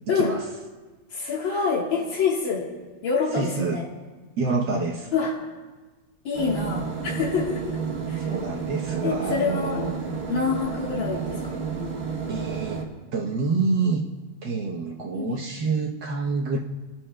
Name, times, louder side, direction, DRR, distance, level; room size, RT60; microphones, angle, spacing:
voice 1, 0.1-0.4 3.3-3.8 4.4-5.1 8.3-9.9 12.3-12.8 13.1-14.0 14.4-16.6, right 4 dB, 65° right, -1 dB, 1.5 m, -27 dB
voice 2, 1.1-2.7 3.0-3.9 5.1-5.4 6.2-7.8 8.1-8.3 9.0-9.9 10.3-12.0 15.1-15.4, left 5 dB, 80° left, -2 dB, 2.2 m, -26 dB
sound 1, 6.3-12.8, right 5 dB, 50° right, 1.8 m, -31 dB
25.5 x 13.0 x 2.2 m, 1.3 s
omnidirectional pair, 2.1 m